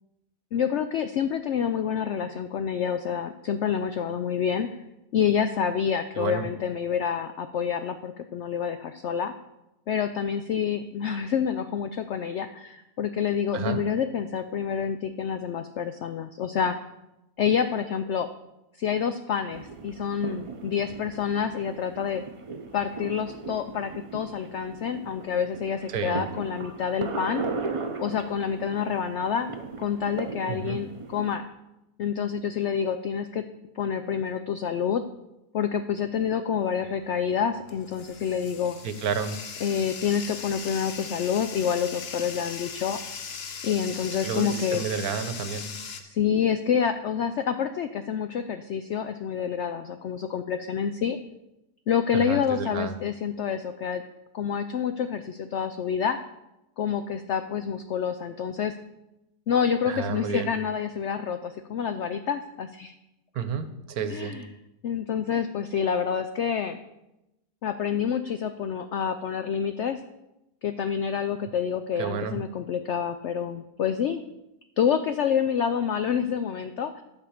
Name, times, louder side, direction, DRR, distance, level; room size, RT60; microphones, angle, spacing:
voice 1, 0.5-4.7 5.1-9.3 9.9-16.8 17.4-18.3 18.8-22.2 22.7-27.5 28.0-29.5 29.8-31.4 32.0-33.4 33.7-35.0 35.5-38.8 39.6-43.0 43.6-44.8 46.0-51.2 51.9-54.0 54.3-56.2 56.8-58.7 59.5-62.9 64.1-64.5 64.8-66.8 67.6-70.0 70.6-74.2 74.8-77.0, left 7 dB, 75° left, 9 dB, 0.6 m, -28 dB
voice 2, 6.2-6.5 13.5-13.8 25.9-26.3 30.5-30.8 38.8-39.4 44.2-45.7 52.1-52.9 59.9-60.5 63.3-64.4 72.0-72.4, right 6 dB, 70° right, 10 dB, 1.3 m, -31 dB
sound 1, 19.5-31.4, right 4 dB, 50° right, 0.3 m, -37 dB
Bathtub (filling or washing), 36.8-46.0, left 6 dB, 50° left, 0.9 m, -39 dB
11.5 x 4.5 x 7.1 m, 0.92 s
omnidirectional pair, 1.7 m